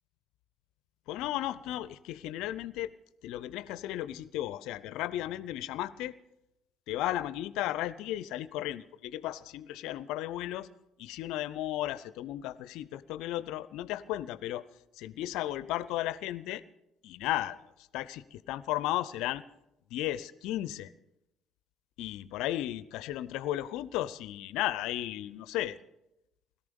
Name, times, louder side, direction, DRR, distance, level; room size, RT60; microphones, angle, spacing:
voice 1, 1.1-2.9 3.2-6.1 6.9-10.7 11.0-14.6 15.0-16.6 17.0-17.6 17.9-19.4 19.9-20.9 22.0-25.8, left 14 dB, 65° left, 18 dB, 0.5 m, -34 dB
17.0 x 13.5 x 5.3 m, 0.88 s
hypercardioid pair, 55°, 0 cm